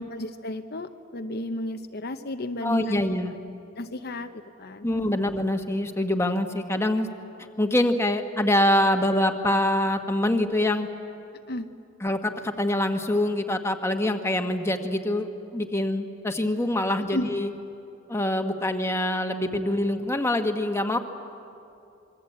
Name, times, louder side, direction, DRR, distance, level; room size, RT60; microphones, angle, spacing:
voice 1, 0.0-3.1 3.8-5.2 11.5-11.7 17.1-17.3, left 1 dB, 55° left, 7 dB, 0.8 m, -33 dB
voice 2, 2.6-3.3 4.8-7.1 7.6-10.9 12.0-17.5 18.1-21.0, left 1 dB, 15° left, 5 dB, 1.4 m, -25 dB
26.0 x 23.0 x 8.6 m, 2.7 s
head